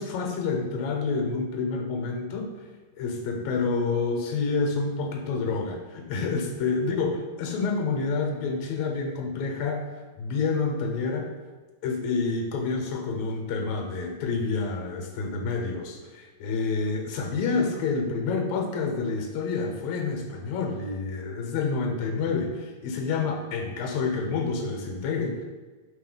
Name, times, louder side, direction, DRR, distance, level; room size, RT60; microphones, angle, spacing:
voice 1, 0.0-2.7 3.0-11.3 11.8-25.5, left 4 dB, 80° left, 1 dB, 2.1 m, -28 dB
5.6 x 3.5 x 5.4 m, 1.3 s
omnidirectional pair, 3.3 m